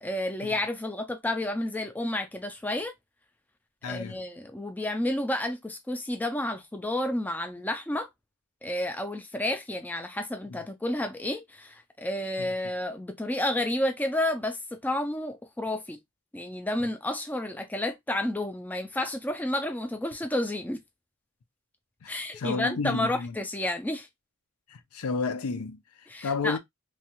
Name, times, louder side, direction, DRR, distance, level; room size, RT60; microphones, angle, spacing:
voice 1, 0.0-2.9 3.9-8.1 8.6-16.0 16.3-20.8 22.1-24.1 26.1-26.6, left 1 dB, 5° left, 0.3 m, -31 dB
voice 2, 3.8-4.2 10.5-10.6 12.4-12.5 22.0-23.4 24.7-26.6, left 4 dB, 80° left, 0.5 m, -32 dB
3.1 x 2.3 x 2.9 m
head